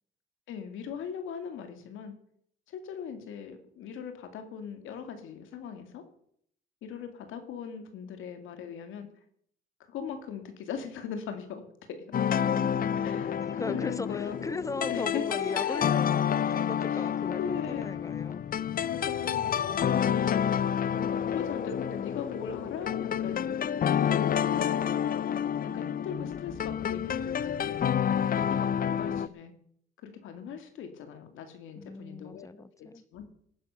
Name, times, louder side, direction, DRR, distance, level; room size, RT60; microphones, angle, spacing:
voice 1, 0.5-2.2 2.7-6.0 6.8-9.1 9.9-12.1 12.9-14.4 14.9-15.2 15.6-15.8 16.9-17.0 17.4-17.8 18.8-20.5 20.9-23.4 23.8-24.9 25.7-27.8 28.3-29.5 30.0-32.5 32.8-33.3, left 7 dB, 85° left, 2.2 m, -39 dB
sound 1, 12.1-29.3, left 9 dB, 45° left, 0.6 m, -29 dB
voice 2, 12.4-18.4 31.7-33.0, left 3 dB, 15° left, 0.8 m, -39 dB
18.0 x 9.9 x 5.6 m
cardioid pair, 90°, 20 cm